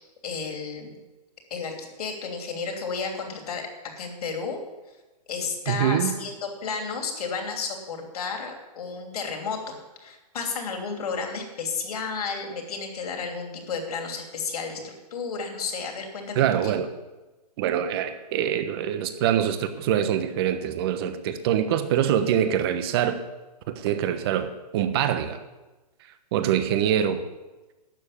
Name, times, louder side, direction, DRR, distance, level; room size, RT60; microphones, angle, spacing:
voice 1, 0.2-0.9 1.5-3.7 4.0-4.6 5.3-16.5, left 5 dB, 60° left, 3 dB, 3.1 m, -32 dB
voice 2, 5.7-6.1 16.3-16.9 17.6-23.2 23.7-25.4 26.3-27.2, right 10 dB, 35° right, 10 dB, 1.1 m, -24 dB
12.0 x 7.2 x 8.6 m, 1.1 s
hypercardioid pair, 150°, 21 cm